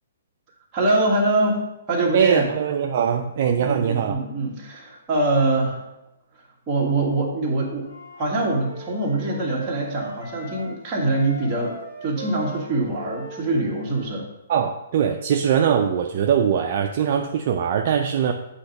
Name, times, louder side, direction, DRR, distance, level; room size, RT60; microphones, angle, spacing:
voice 1, 0.7-2.5 3.6-5.9 6.7-7.9 8.2-14.2, right 2 dB, 20° right, -5 dB, 1.5 m, -24 dB
voice 2, 2.1-4.2 14.5-18.3, right 8 dB, 45° right, 3 dB, 0.4 m, -21 dB
Wind instrument woodwind instrument, 7.8-10.7 11.0-14.2, equal, 70° left, 1.9 m, -39 dB
8.3 x 2.8 x 5.1 m, 0.91 s
hypercardioid pair, 165°, 0 cm